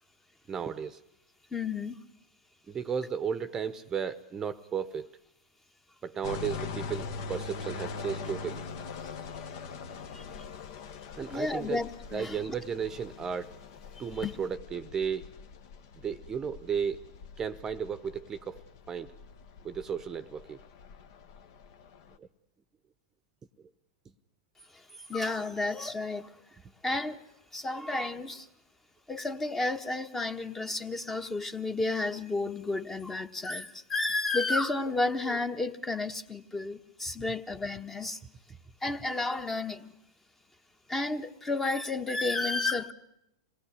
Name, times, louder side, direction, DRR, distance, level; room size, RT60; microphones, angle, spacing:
voice 1, 0.5-1.0 2.7-5.1 6.0-8.6 11.1-11.8 12.1-13.6 14.0-15.3 16.0-17.0 17.4-18.6 18.9-19.1 19.6-20.6 22.2-22.3, right 7 dB, 20° right, 0.9 m, -34 dB
voice 2, 1.5-2.0 9.0-9.1 10.1-10.2 11.3-12.5 14.2-14.3 24.7-26.4 26.8-27.2 27.5-28.5 29.1-38.2 38.8-39.9 40.9-42.9, left 2 dB, 15° left, 1.2 m, -32 dB
sound 1, 6.2-22.2, left 5 dB, 55° left, 1.4 m, -43 dB
26.5 x 19.5 x 9.8 m
hypercardioid pair, 105°, 2 cm